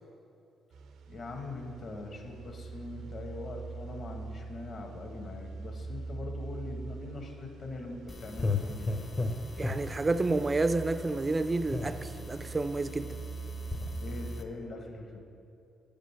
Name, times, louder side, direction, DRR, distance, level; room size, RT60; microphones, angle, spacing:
sound 1, 0.7-14.4, right 3 dB, 85° right, 0.5 m, -43 dB
voice 1, 1.1-9.0 14.0-15.2, left 2 dB, 50° left, 2 dB, 1.2 m, -42 dB
sound 2, 8.1-14.4, left 3 dB, 30° left, 0.6 m, -37 dB
voice 2, 9.6-13.2, right 3 dB, 25° right, 12 dB, 0.3 m, -30 dB
7.7 x 5.2 x 5.6 m, 2.8 s
cardioid pair, 90°, 0 cm